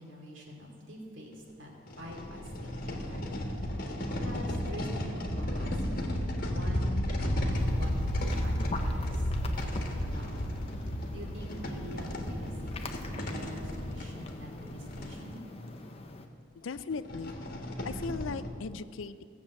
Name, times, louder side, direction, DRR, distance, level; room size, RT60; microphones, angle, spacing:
voice 1, 0.0-1.7 2.0-3.5 4.2-6.1 6.5-7.1 7.4-12.5 12.8-15.4, equal, 70° right, 0 dB, 2.6 m, -46 dB
sound 1, 1.3-1.4 1.9-15.2 15.9-16.0 16.2-16.3 16.9-18.5, equal, 45° left, 1.4 m, -33 dB
sound 2, 7.5-16.3, left 2 dB, 30° left, 0.7 m, -44 dB
voice 2, 16.6-17.3 17.8-19.2, left 4 dB, 75° left, 14 dB, 0.5 m, -37 dB
16.0 x 7.3 x 7.4 m, 2.3 s
head